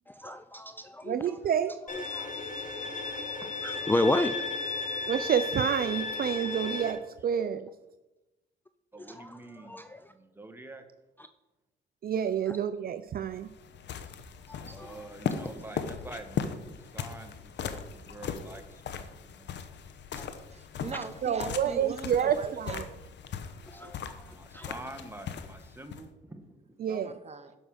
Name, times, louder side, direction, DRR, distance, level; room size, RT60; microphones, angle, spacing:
voice 1, 0.2-1.1 2.1-2.3 3.6-4.3 9.1-9.3 9.7-9.9 14.5-15.0 20.2-20.3 23.7-24.0 24.5-24.7, left 1 dB, 10° left, 0.5 m, -31 dB
voice 2, 1.0-1.8 5.1-7.7 12.0-13.5 21.2-22.8 26.8-27.2, right 8 dB, 50° right, 0.5 m, -29 dB
Bowed string instrument, 1.9-6.9, left 4 dB, 40° left, 2.3 m, -34 dB
voice 3, 8.9-9.8 10.1-10.8 14.6-19.5 24.3-26.7, right 2 dB, 10° right, 1.4 m, -47 dB
sound 1, 13.1-26.1, left 7 dB, 65° left, 0.9 m, -39 dB
voice 4, 20.5-23.0 26.8-27.6, right 4 dB, 35° right, 1.1 m, -40 dB
11.5 x 5.5 x 6.4 m
cardioid pair, 90°, 20 cm